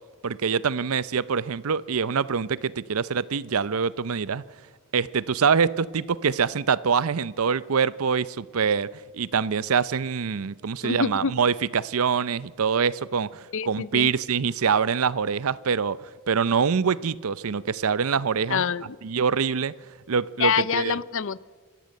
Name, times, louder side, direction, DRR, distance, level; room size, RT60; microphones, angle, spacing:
voice 1, 0.2-4.4 4.9-8.9 9.1-18.7 19.0-19.7 20.1-21.0, right 6 dB, 70° right, 19 dB, 0.6 m, -25 dB
voice 2, 10.8-11.3 13.5-14.1 18.5-18.9 20.4-21.4, left 6 dB, 60° left, 19 dB, 0.6 m, -26 dB
26.0 x 13.5 x 7.8 m, 1.5 s
head